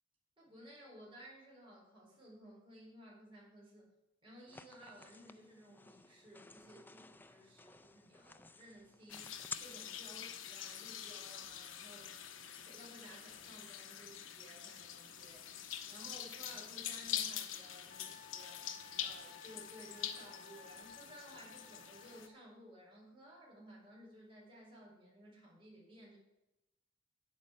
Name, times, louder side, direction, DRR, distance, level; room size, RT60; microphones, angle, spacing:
voice 1, 0.4-3.9 4.2-12.1 12.6-15.5 15.9-18.7 19.0-26.2, equal, 25° right, -4 dB, 4.3 m, -57 dB
sound 1, 4.5-9.6, left 4 dB, 10° left, 0.3 m, -53 dB
sound 2, 9.1-22.3, left 9 dB, 75° left, 0.9 m, -45 dB
Wind instrument woodwind instrument, 17.9-22.4, left 4 dB, 50° left, 2.1 m, -57 dB
9.4 x 8.6 x 6.3 m, 0.95 s
head